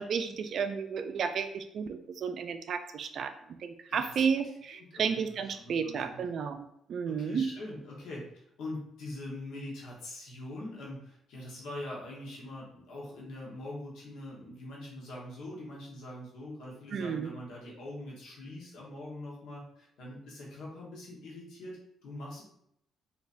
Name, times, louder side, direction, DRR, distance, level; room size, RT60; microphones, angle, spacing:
voice 1, 0.0-3.3 3.6-7.5 16.9-17.3, right 6 dB, 60° right, 9 dB, 0.4 m, -32 dB
voice 2, 3.9-4.2 4.7-5.3 5.6-6.2 7.1-8.3 8.6-22.4, left 1 dB, 80° left, -3 dB, 1.2 m, -43 dB
4.0 x 2.9 x 2.6 m, 0.74 s
cardioid pair, 90°, 0 cm